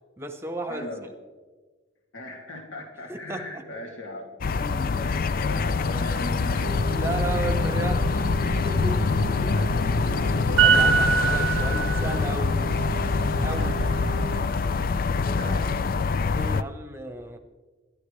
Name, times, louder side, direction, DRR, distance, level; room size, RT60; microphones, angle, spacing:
voice 1, 0.2-0.9 3.1-3.6 4.6-5.0 6.9-9.0 9.4-9.6 10.6-12.6 13.4-13.7 16.3-17.4, right 2 dB, 10° right, 6 dB, 1.0 m, -34 dB
voice 2, 0.7-1.1 2.1-4.4 4.9-6.8 9.0-9.7 13.5-13.7 15.1-15.7, left 1 dB, 75° left, -1 dB, 2.5 m, -38 dB
sound 1, 4.4-16.6, left 4 dB, 45° left, 0.4 m, -25 dB
sound 2, 6.6-14.4, right 6 dB, 75° right, 0.5 m, -27 dB
28.0 x 12.0 x 3.3 m, 1.4 s
head